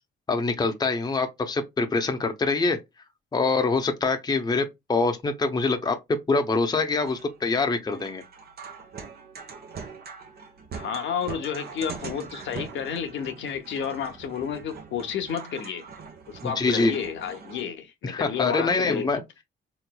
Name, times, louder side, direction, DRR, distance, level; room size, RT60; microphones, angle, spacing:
voice 1, 0.3-2.8 3.3-6.0 6.3-8.2 16.4-16.9 18.0-19.2, left 3 dB, 20° left, 0.7 m, -24 dB
sound 1, 7.1-17.6, right 5 dB, 50° right, 0.9 m, -42 dB
voice 2, 10.7-15.9 16.3-19.1, left 7 dB, 70° left, 0.8 m, -31 dB
3.7 x 3.0 x 2.2 m
cardioid pair, 90°, 20 cm